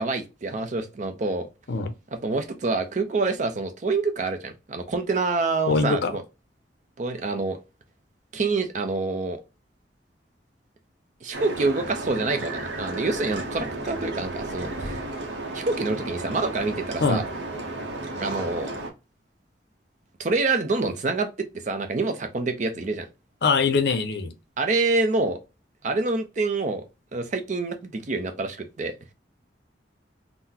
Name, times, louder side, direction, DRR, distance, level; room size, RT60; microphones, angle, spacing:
voice 1, 0.0-1.5 2.1-6.2 7.0-7.6 8.3-9.4 11.2-15.0 15.5-17.2 18.2-18.7 20.2-23.1 24.6-25.4 25.8-26.9 27.1-28.9, right 3 dB, 40° right, 0.5 m, -26 dB
voice 2, 5.7-6.1 17.0-17.2 23.4-24.3, left 4 dB, 60° left, 0.5 m, -22 dB
sound 1, 11.3-18.9, right 2 dB, 80° right, 0.7 m, -33 dB
3.8 x 2.1 x 2.7 m
head